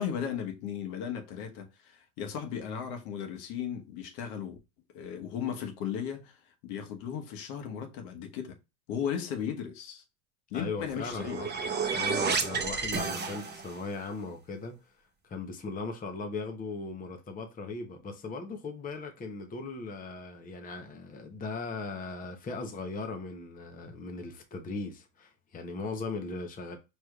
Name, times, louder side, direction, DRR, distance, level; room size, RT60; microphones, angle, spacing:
voice 1, 0.0-4.6 4.9-6.4 6.6-8.6 8.9-10.0 10.5-11.4, left 8 dB, 70° left, 1.2 m, -36 dB
voice 2, 10.5-11.5 11.9-14.8 15.2-26.8, left 3 dB, 20° left, 0.8 m, -38 dB
sound 1, 10.8-13.9, right 5 dB, 20° right, 0.9 m, -31 dB
4.8 x 3.2 x 2.3 m
supercardioid pair, 110°, 46 cm